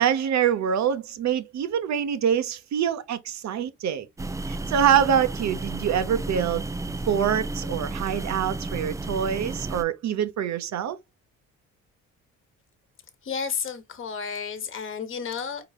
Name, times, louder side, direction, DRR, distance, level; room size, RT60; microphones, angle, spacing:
voice 1, 0.0-4.1 4.5-6.6 7.1-11.0, right 8 dB, 65° right, 0.8 m, -25 dB
sound 1, 4.2-9.8, right 2 dB, 10° right, 0.3 m, -32 dB
voice 2, 13.2-15.6, left 6 dB, 45° left, 1.1 m, -32 dB
4.6 x 3.9 x 2.3 m
cardioid pair, 90°, 30 cm